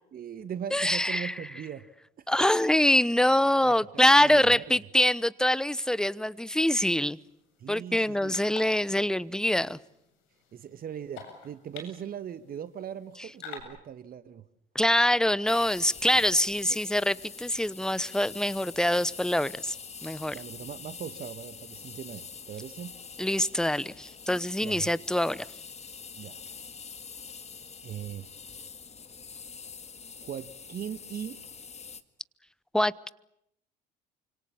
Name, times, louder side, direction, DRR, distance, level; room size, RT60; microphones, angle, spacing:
voice 1, 0.1-1.9 2.4-2.5 3.6-4.8 7.6-8.4 10.5-14.4 20.3-22.9 24.6-24.9 26.2-26.4 27.8-28.3 30.2-31.4, right 9 dB, 45° right, 1.4 m, -40 dB
voice 2, 0.7-1.3 2.3-7.2 7.7-9.8 14.7-19.7 20.0-20.4 23.2-25.4 32.7-33.1, left 1 dB, 5° left, 1.0 m, -24 dB
sound 1, 6.2-13.6, left 7 dB, 65° left, 7.7 m, -50 dB
sound 2, 15.5-32.0, left 5 dB, 30° left, 2.0 m, -45 dB
29.0 x 26.0 x 7.2 m
hypercardioid pair, 55°, 21 cm